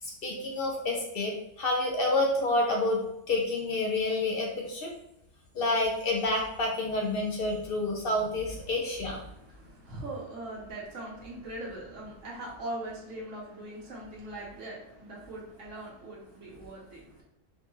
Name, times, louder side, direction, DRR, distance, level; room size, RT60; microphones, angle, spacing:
voice 1, 0.0-5.0 5.5-9.2, left 2 dB, 60° left, 0 dB, 0.7 m, -29 dB
voice 2, 9.3-17.2, right 1 dB, 85° right, -4 dB, 1.2 m, -41 dB
4.2 x 2.2 x 3.0 m, 0.82 s
omnidirectional pair, 1.2 m